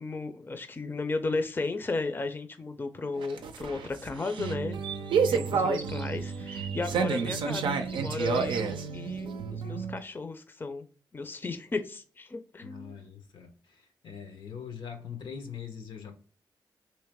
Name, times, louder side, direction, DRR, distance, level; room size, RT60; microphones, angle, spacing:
voice 1, 0.0-4.8 5.3-10.9 11.1-13.0, left 3 dB, 25° left, 0.5 m, -34 dB
sound 1, 3.1-10.0, right 5 dB, 85° right, 0.4 m, -30 dB
voice 2, 5.5-5.8 12.6-16.2, left 7 dB, 80° left, 0.7 m, -43 dB
3.1 x 2.9 x 3.5 m
cardioid pair, 65°, 8 cm